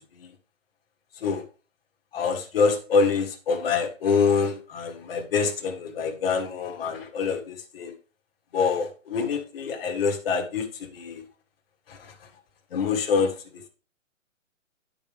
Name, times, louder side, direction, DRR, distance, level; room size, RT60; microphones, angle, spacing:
voice 1, 2.1-7.9 8.5-11.2 11.9-12.1 12.7-13.7, left 5 dB, 45° left, 3 dB, 1.6 m, -26 dB
10.0 x 5.3 x 3.4 m, 0.35 s
hypercardioid pair, 160°, 39 cm